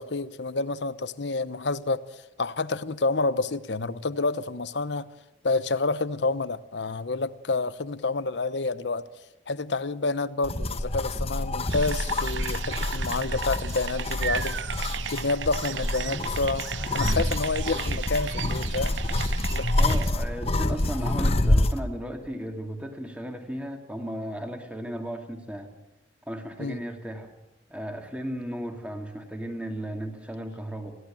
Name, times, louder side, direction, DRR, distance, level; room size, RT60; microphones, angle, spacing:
voice 1, 0.0-5.1 5.4-9.0 9.5-14.6 15.1-16.7 16.9-20.0 20.6-20.8 26.6-26.8, left 3 dB, 70° left, 15 dB, 0.9 m, -29 dB
sound 1, 10.4-21.8, left 1 dB, 35° left, 1.1 m, -27 dB
sound 2, 11.7-20.1, right 8 dB, 85° right, 0.8 m, -35 dB
voice 2, 19.8-25.7 26.3-27.3 27.7-31.0, equal, 5° right, 4 dB, 2.4 m, -35 dB
21.5 x 16.0 x 8.9 m, 0.96 s
head